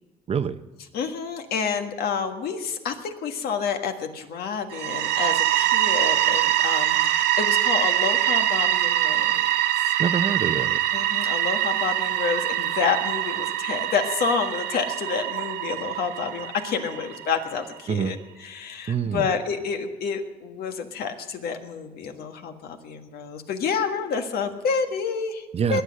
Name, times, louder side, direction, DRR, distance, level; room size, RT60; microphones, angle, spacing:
voice 1, 0.3-0.6 10.0-10.8 17.9-18.2 18.9-19.3 25.5-25.8, right 7 dB, 35° right, 12 dB, 0.7 m, -25 dB
voice 2, 0.9-9.4 10.9-25.4 25.7-25.8, left 6 dB, 65° left, 6 dB, 1.6 m, -29 dB
sound 1, 4.7-17.4, right 13 dB, 80° right, 0.8 m, -24 dB
21.0 x 8.2 x 6.4 m, 1.2 s
cardioid pair, 110°, 17 cm